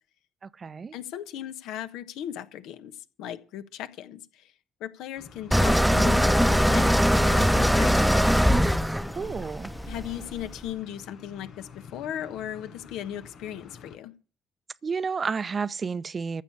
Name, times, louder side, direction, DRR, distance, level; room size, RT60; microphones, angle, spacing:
voice 1, 0.4-1.0 9.2-9.7 14.8-16.4, right 5 dB, 40° right, 0.7 m, -31 dB
voice 2, 0.9-4.5 4.8-8.4 9.9-14.1, left 11 dB, 75° left, 1.3 m, -37 dB
sound 1, 5.2-14.0, left 5 dB, 55° left, 5.3 m, -49 dB
sound 2, 5.5-10.5, equal, ahead, 0.9 m, -21 dB
14.0 x 6.8 x 8.3 m
hypercardioid pair, 50°, 0 cm